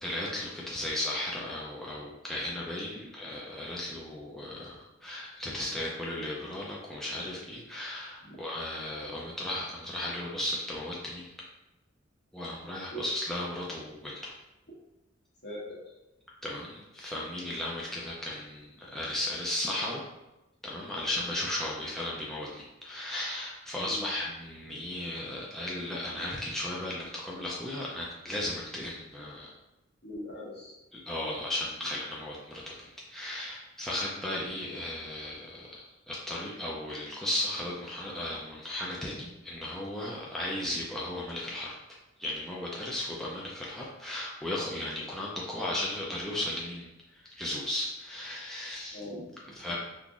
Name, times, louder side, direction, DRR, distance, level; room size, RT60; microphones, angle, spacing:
voice 1, 0.0-11.3 12.3-14.3 16.4-20.0 20.6-29.5 30.9-41.7 42.2-46.9 47.1-49.0 49.5-49.8, left 1 dB, ahead, -5 dB, 0.4 m, -35 dB
voice 2, 15.4-15.8 23.9-24.1 30.0-30.7 48.9-49.6, equal, 55° left, -5 dB, 1.2 m, -41 dB
3.7 x 2.8 x 2.4 m, 0.97 s
head